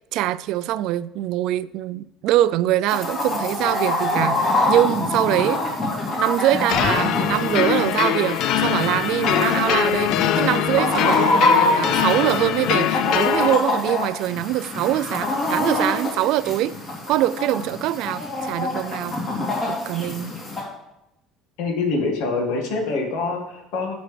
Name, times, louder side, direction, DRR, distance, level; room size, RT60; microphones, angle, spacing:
voice 1, 0.1-5.6 6.2-16.8 17.1-19.2 19.7-20.4, right 13 dB, 70° right, 0.3 m, -23 dB
Chicken rooster, 2.9-20.6, left 2 dB, 30° left, 3.1 m, -25 dB
sound 1, 6.7-13.5, left 10 dB, 60° left, 0.4 m, -22 dB
voice 2, 21.6-24.0, left 3 dB, 85° left, 1.9 m, -25 dB
17.0 x 6.1 x 3.3 m
cardioid pair, 135°, 0 cm